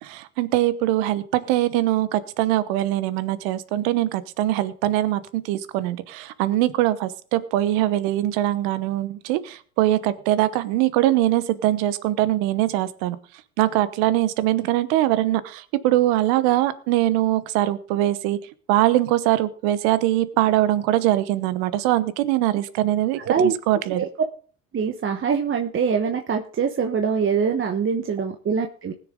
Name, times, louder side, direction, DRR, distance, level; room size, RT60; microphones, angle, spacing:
voice 1, 0.0-13.2 13.6-18.4 18.7-24.0, right 14 dB, 65° right, 15 dB, 1.1 m, -22 dB
voice 2, 23.2-23.5 23.9-24.1 24.7-28.9, right 6 dB, 30° right, 5 dB, 1.0 m, -23 dB
20.0 x 6.9 x 3.7 m, 0.42 s
hypercardioid pair, 75°, 41 cm